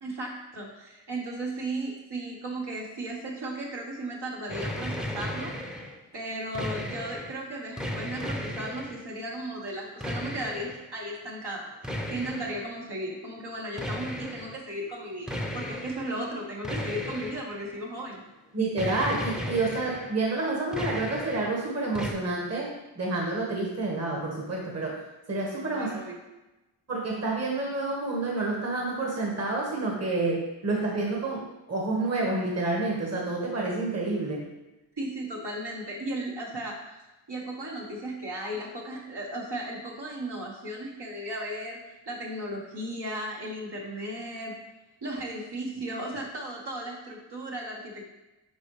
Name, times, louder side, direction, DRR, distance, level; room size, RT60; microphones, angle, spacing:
voice 1, 0.0-5.5 6.1-18.2 25.7-26.2 35.0-36.8 37.3-41.8 42.1-44.5 45.0-48.0, right 1 dB, 55° right, -3 dB, 1.7 m, -35 dB
sound 1, 4.5-6.0 6.3-7.4 7.8-9.0 10.0-10.8 11.8-12.7 13.8-14.6 15.3-16.1 16.6-17.8 18.8-20.2 20.5-21.6 21.9-22.1, equal, ahead, 0.9 m, -35 dB
voice 2, 18.5-25.0 25.3-26.0 26.9-34.5, right 2 dB, 30° right, -2 dB, 1.6 m, -29 dB
10.5 x 3.7 x 3.3 m, 1.0 s
cardioid pair, 70°, 48 cm